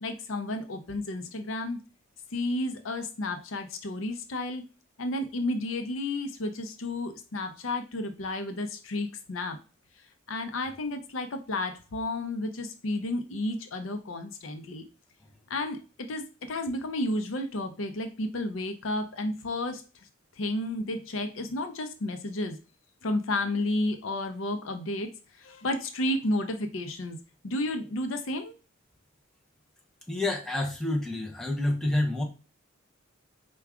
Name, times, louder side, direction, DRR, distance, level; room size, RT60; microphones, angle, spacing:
voice 1, 0.0-1.8 2.3-4.6 5.0-9.6 10.3-14.8 15.5-15.8 16.1-16.2 16.5-19.8 20.4-22.6 23.0-25.1 25.4-27.2 27.4-28.5, left 1 dB, 70° left, 7 dB, 0.6 m, -32 dB
voice 2, 30.1-32.2, left 1 dB, ahead, -1 dB, 0.7 m, -28 dB
4.7 x 2.3 x 3.5 m, 0.33 s
head